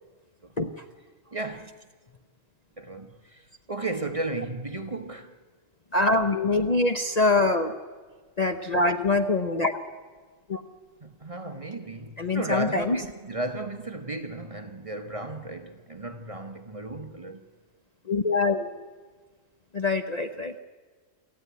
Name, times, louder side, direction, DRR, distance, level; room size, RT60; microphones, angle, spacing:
voice 1, 1.3-1.8 2.8-5.4 11.0-17.5, right 2 dB, 30° right, 0.9 m, -34 dB
voice 2, 5.9-7.8 8.4-9.7 10.5-10.6 12.2-13.0 18.1-18.7 19.7-20.5, left 3 dB, 35° left, 0.8 m, -24 dB
26.0 x 14.0 x 9.5 m
omnidirectional pair, 1.4 m